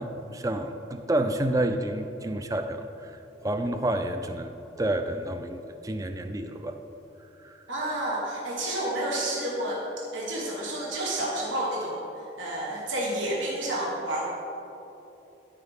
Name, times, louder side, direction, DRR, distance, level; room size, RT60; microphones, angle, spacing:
voice 1, 0.0-3.1 3.4-4.5 4.8-6.8 7.4-7.6, right 1 dB, 20° right, 7 dB, 0.3 m, -29 dB
voice 2, 7.7-9.8 10.1-12.0 12.4-14.3, right 1 dB, 90° right, -4 dB, 1.4 m, -30 dB
13.5 x 4.7 x 3.6 m, 3.0 s
head